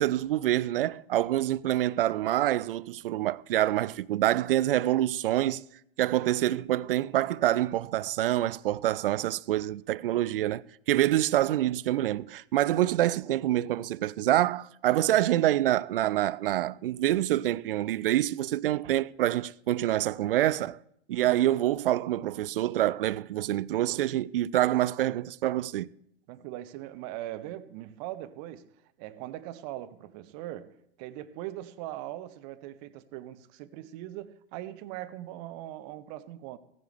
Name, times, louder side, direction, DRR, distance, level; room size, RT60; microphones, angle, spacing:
voice 1, 0.0-5.6 6.0-20.8 21.1-25.9, right 13 dB, 55° right, 0.4 m, -26 dB
voice 2, 26.3-28.7 29.0-36.6, right 14 dB, 40° right, 0.8 m, -40 dB
15.5 x 15.0 x 3.3 m
figure-of-eight pair, 95°, 33 cm